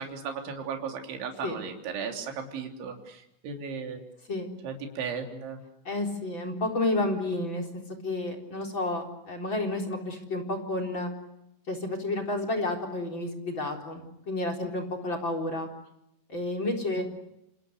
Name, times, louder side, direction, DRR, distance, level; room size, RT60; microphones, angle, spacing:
voice 1, 0.0-4.0 4.6-5.6 17.0-17.1, right 6 dB, 70° right, 4 dB, 5.6 m, -36 dB
voice 2, 5.8-7.7 8.0-11.1 11.7-15.7 16.3-17.0, left 2 dB, 25° left, 3 dB, 4.1 m, -30 dB
29.5 x 27.0 x 6.6 m, 0.82 s
omnidirectional pair, 5.6 m